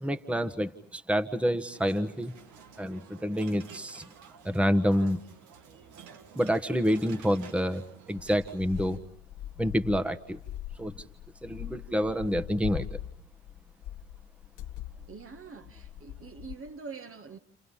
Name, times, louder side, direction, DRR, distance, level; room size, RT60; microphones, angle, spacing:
voice 1, 0.0-2.3 2.8-4.0 4.4-5.2 6.3-7.8 8.1-9.0 9.6-10.4 10.8-11.0 11.4-13.0, equal, 5° right, 1.3 m, -28 dB
sound 1, 1.7-9.0, right 7 dB, 70° right, 2.1 m, -51 dB
sound 2, 8.1-16.5, left 12 dB, 60° left, 1.5 m, -42 dB
voice 2, 15.1-17.4, right 5 dB, 45° right, 1.8 m, -44 dB
29.5 x 29.5 x 5.6 m
hypercardioid pair, 60°, 32 cm